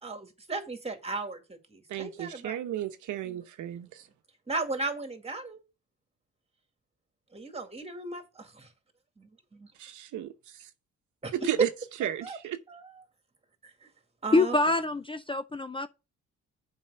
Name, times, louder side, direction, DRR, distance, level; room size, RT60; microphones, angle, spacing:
voice 1, 0.0-1.4 1.7-2.6 3.2-3.4 4.5-5.6 7.3-8.7 9.2-9.7 11.2-11.7 12.2-12.4 12.7-13.0 14.2-14.6, right 3 dB, 20° right, 2.3 m, -35 dB
voice 2, 1.9-4.0 9.8-10.3 11.3-11.7 12.0-12.6, right 12 dB, 80° right, 1.0 m, -33 dB
voice 3, 14.3-15.9, left 2 dB, 15° left, 0.5 m, -25 dB
7.4 x 5.3 x 6.8 m
cardioid pair, 90°, 30 cm